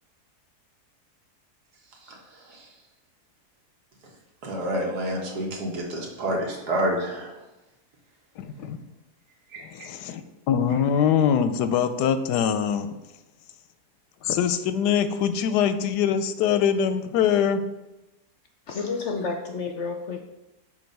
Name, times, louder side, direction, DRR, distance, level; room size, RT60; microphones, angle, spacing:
voice 1, 2.0-2.7 4.4-7.4 9.5-9.9 10.7-10.8, right 1 dB, 75° right, 0 dB, 1.8 m, -29 dB
voice 2, 8.4-8.8 9.6-10.2 10.5-12.9 14.2-17.6, left 8 dB, 90° left, 10 dB, 1.2 m, -23 dB
voice 3, 18.7-20.2, left 4 dB, 65° left, 3 dB, 0.7 m, -30 dB
7.1 x 2.8 x 5.3 m, 0.97 s
omnidirectional pair, 1.7 m